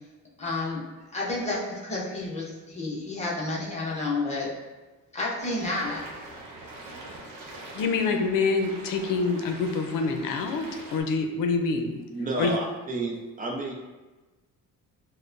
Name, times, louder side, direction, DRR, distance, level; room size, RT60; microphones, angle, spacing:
voice 1, 0.4-0.8 1.1-4.5 5.1-6.1, left 2 dB, 20° left, -5 dB, 0.8 m, -30 dB
sound 1, 5.4-11.0, right 2 dB, 80° right, 0.9 m, -43 dB
voice 2, 7.7-10.7 10.9-11.9 12.4-12.5, left 4 dB, 75° left, 4 dB, 0.6 m, -26 dB
voice 3, 11.7-13.7, right 2 dB, 25° right, -1 dB, 0.6 m, -31 dB
6.5 x 2.2 x 2.5 m, 1.2 s
cardioid pair, 175°, 33 cm